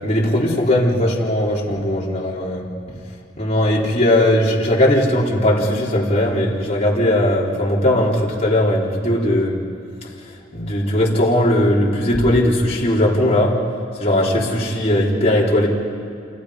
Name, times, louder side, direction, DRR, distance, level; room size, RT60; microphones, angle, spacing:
voice 1, 0.0-2.6 3.4-9.5 10.5-13.6 14.0-15.7, left 1 dB, 35° left, -4 dB, 3.9 m, -18 dB
28.5 x 27.0 x 5.1 m, 2.5 s
head